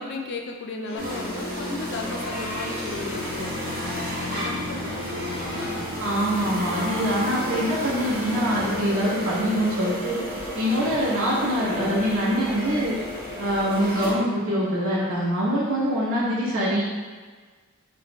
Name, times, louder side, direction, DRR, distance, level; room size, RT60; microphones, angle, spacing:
voice 1, 0.0-5.9 6.7-6.8, left 3 dB, 55° left, 2 dB, 0.4 m, -35 dB
sound 1, 0.8-16.1, equal, 80° left, 1.1 m, -42 dB
sound 2, 1.0-14.1, equal, 45° right, 1.4 m, -32 dB
voice 2, 6.0-10.2 10.5-13.0 13.4-16.8, equal, 65° right, -7 dB, 1.2 m, -24 dB
4.6 x 3.2 x 2.3 m, 1.5 s
head